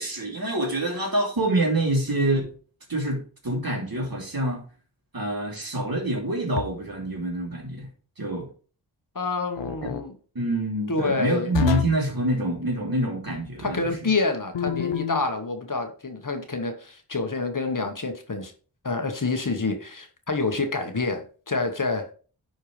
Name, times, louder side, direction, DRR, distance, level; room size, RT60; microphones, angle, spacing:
voice 1, 0.0-2.5 2.9-4.6 5.1-7.9 8.2-8.5 9.8-9.9 10.3-13.8, right 1 dB, 55° right, 3.0 m, -26 dB
sound 1, 6.5-7.0 9.6-10.0 11.5-12.1 14.5-15.3, left 9 dB, 85° left, 0.7 m, -28 dB
voice 2, 9.1-10.1 10.9-11.5 13.6-18.5 18.8-22.1, left 3 dB, 50° left, 1.3 m, -27 dB
10.0 x 4.4 x 3.3 m
wide cardioid pair, 45°, 42 cm